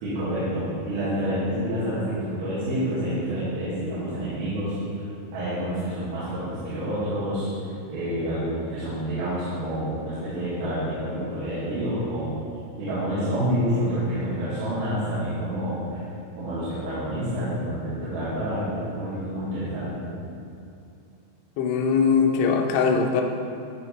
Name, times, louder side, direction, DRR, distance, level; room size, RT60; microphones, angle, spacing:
voice 1, 0.0-4.7 5.3-7.5 7.9-12.3 12.8-16.0 16.4-20.1, equal, 90° right, -14 dB, 4.7 m, -28 dB
voice 2, 21.6-23.2, left 5 dB, 80° left, 2 dB, 2.5 m, -21 dB
14.5 x 4.9 x 3.2 m, 2.6 s
omnidirectional pair, 5.9 m